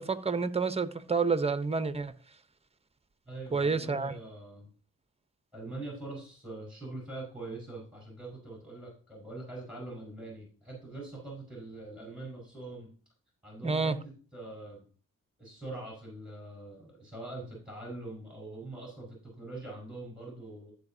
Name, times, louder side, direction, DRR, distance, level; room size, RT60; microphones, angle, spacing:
voice 1, 0.0-2.1 3.5-4.1 13.6-13.9, right 4 dB, 20° right, 0.9 m, -29 dB
voice 2, 3.3-4.7 5.5-12.9 13.4-14.8 15.4-20.7, right 2 dB, 5° right, 4.8 m, -43 dB
14.5 x 5.1 x 2.7 m
supercardioid pair, 45°, 34 cm